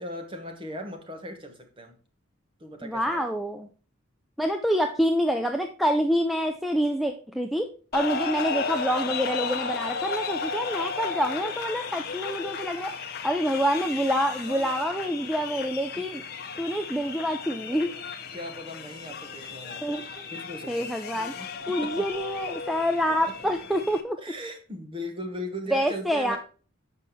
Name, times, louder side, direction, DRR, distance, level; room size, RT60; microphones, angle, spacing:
voice 1, 0.0-2.0 2.6-3.3 15.9-16.0 17.7-17.8 18.3-20.0 20.3-22.1 23.1-23.3 24.2-26.4, equal, 25° right, 5 dB, 1.1 m, -39 dB
voice 2, 2.8-3.7 4.4-12.9 13.2-16.2 16.6-17.9 19.8-20.0 20.7-24.2 25.7-26.4, equal, ahead, 5 dB, 0.4 m, -27 dB
sound 1, 7.9-24.0, left 5 dB, 45° left, 0.9 m, -34 dB
7.3 x 5.6 x 4.5 m, 0.38 s
head